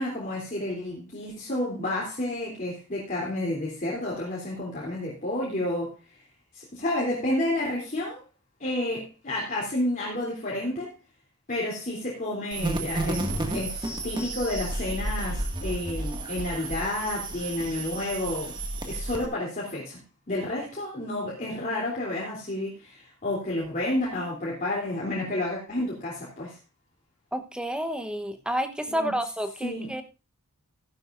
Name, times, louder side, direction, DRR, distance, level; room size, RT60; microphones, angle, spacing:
voice 1, 0.0-6.2 6.5-8.2 8.6-10.9 11.5-18.6 18.8-20.0 20.3-26.6 28.9-29.2 29.6-29.9, left 1 dB, 40° left, -4 dB, 3.2 m, -30 dB
sound 1, 12.5-19.3, right 2 dB, 20° right, 1.9 m, -32 dB
voice 2, 27.3-30.0, equal, 5° right, 8 dB, 1.0 m, -30 dB
15.0 x 11.5 x 2.6 m, 0.29 s
head